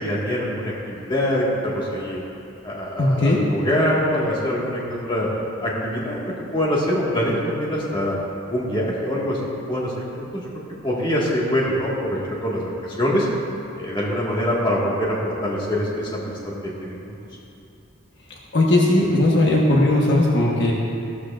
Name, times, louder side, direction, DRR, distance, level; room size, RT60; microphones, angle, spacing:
voice 1, 0.0-2.2 2.6-5.3 5.6-8.2 8.5-9.4 9.7-10.5 10.8-12.7 13.0-13.3 13.8-16.3 16.8-17.0, equal, 20° left, -5 dB, 1.7 m, -24 dB
voice 2, 3.0-3.5 18.3-20.7, left 1 dB, 55° left, -3 dB, 1.2 m, -18 dB
15.0 x 12.0 x 2.5 m, 2.7 s
head